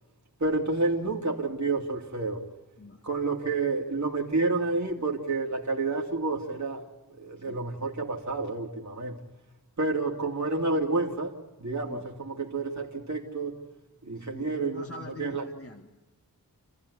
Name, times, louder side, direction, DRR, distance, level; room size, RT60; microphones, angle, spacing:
voice 1, 0.4-2.4 3.0-6.9 7.2-9.2 9.8-13.6 14.0-14.8 15.2-15.4, right 3 dB, 50° right, 2.7 m, -29 dB
voice 2, 14.2-15.9, left 2 dB, 40° left, 2.0 m, -45 dB
28.0 x 15.0 x 9.9 m
cardioid pair, 40°, 37 cm